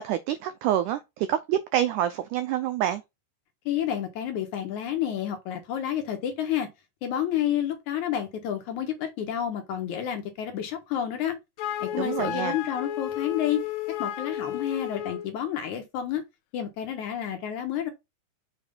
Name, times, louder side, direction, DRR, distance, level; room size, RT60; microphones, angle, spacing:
voice 1, 0.0-3.0 12.0-12.6, right 11 dB, 85° right, 1.8 m, -27 dB
voice 2, 3.7-6.7 7.0-11.4 11.8-13.6 14.0-16.2 16.5-17.9, left 10 dB, 70° left, 2.0 m, -30 dB
Wind instrument woodwind instrument, 11.6-15.3, left 11 dB, 85° left, 1.7 m, -32 dB
6.8 x 3.0 x 5.3 m
omnidirectional pair, 4.2 m